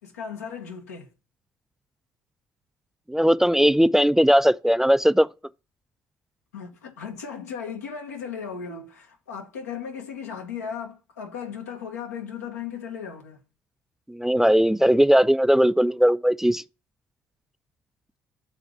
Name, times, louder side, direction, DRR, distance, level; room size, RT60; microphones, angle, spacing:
voice 1, 0.0-1.1 6.5-13.4, left 7 dB, 90° left, 1.0 m, -36 dB
voice 2, 3.1-5.3 14.1-16.6, equal, 5° right, 0.3 m, -19 dB
6.8 x 3.9 x 5.9 m
hypercardioid pair, 45°, 8 cm